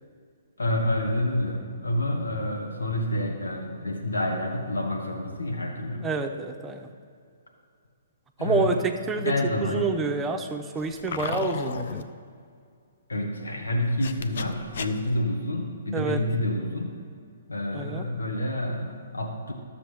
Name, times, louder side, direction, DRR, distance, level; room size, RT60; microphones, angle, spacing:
voice 1, 0.6-6.1 8.4-8.9 9.2-9.9 13.1-17.0 17.5-19.5, left 1 dB, 80° left, 1 dB, 1.5 m, -28 dB
voice 2, 6.0-6.9 8.4-12.1 15.9-16.2 17.7-18.1, right 3 dB, 15° right, 5 dB, 0.6 m, -28 dB
sound 1, 10.8-12.0 13.8-15.2, left 5 dB, 60° left, 0.5 m, -35 dB
12.5 x 7.0 x 3.4 m, 2.3 s
figure-of-eight pair, 125°, 0 cm